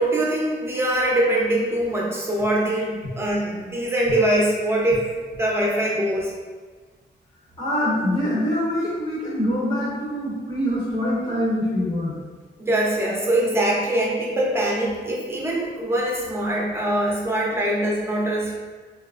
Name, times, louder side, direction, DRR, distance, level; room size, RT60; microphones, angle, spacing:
voice 1, 0.0-5.0 5.4-6.3 12.6-18.5, right 1 dB, 15° right, -3 dB, 0.7 m, -23 dB
voice 2, 7.6-12.2, equal, 25° left, -8 dB, 0.9 m, -24 dB
3.9 x 2.3 x 2.5 m, 1.4 s
wide cardioid pair, 125°, 19 cm